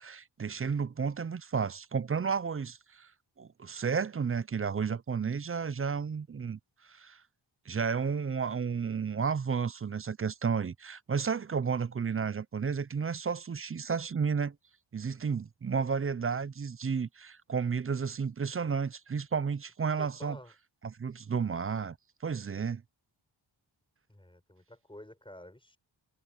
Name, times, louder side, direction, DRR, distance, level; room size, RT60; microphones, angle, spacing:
voice 1, 0.0-3.1 3.4-7.2 7.7-14.6 14.9-20.4 20.8-22.0 22.2-22.8, right 6 dB, 30° right, 0.4 m, -32 dB
voice 2, 20.0-20.5 24.1-25.8, left 1 dB, 10° left, 6.6 m, -50 dB
wide cardioid pair, 135°, 48 cm